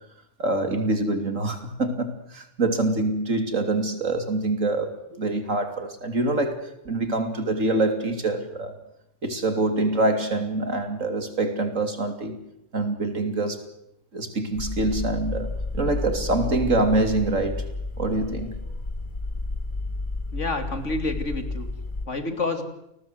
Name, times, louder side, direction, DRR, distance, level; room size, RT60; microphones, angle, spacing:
voice 1, 0.4-8.7 9.2-12.4 12.7-13.6 14.1-17.7 18.0-18.5, right 2 dB, 80° right, 3.4 m, -25 dB
sound 1, 14.5-22.1, left 2 dB, 40° left, 2.0 m, -31 dB
voice 2, 20.3-21.7 22.1-22.6, left 3 dB, 65° left, 3.1 m, -28 dB
29.0 x 20.0 x 8.0 m
omnidirectional pair, 1.3 m